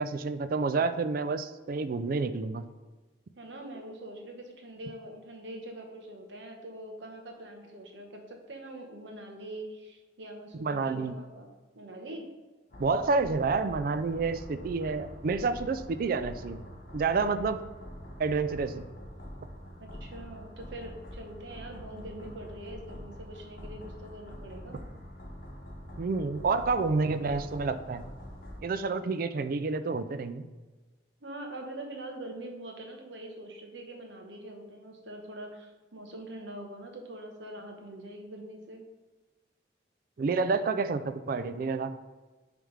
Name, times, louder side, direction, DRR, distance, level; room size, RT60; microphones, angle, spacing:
voice 1, 0.0-2.6 10.6-11.2 12.8-16.6 16.9-17.6 18.2-18.8 26.0-28.0 28.6-30.4 40.2-42.0, right 4 dB, 50° right, 11 dB, 0.4 m, -29 dB
voice 2, 3.4-11.5 11.7-12.2 19.8-24.8 29.0-29.1 31.2-38.9, right 1 dB, 75° right, 2 dB, 1.1 m, -44 dB
sound 1, 12.7-28.6, equal, 50° left, 1.0 m, -45 dB
9.9 x 3.4 x 3.2 m, 1.3 s
head